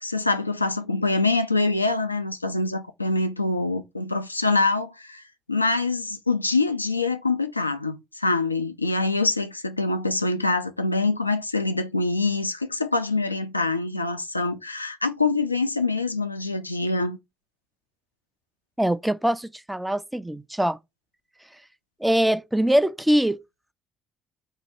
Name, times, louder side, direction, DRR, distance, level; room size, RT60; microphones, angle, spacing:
voice 1, 0.0-5.2 5.5-17.2, left 3 dB, 90° left, 0.3 m, -25 dB
voice 2, 18.8-20.8 22.0-23.4, equal, 5° right, 0.4 m, -23 dB
4.4 x 2.2 x 4.2 m
figure-of-eight pair, 50°, 0 cm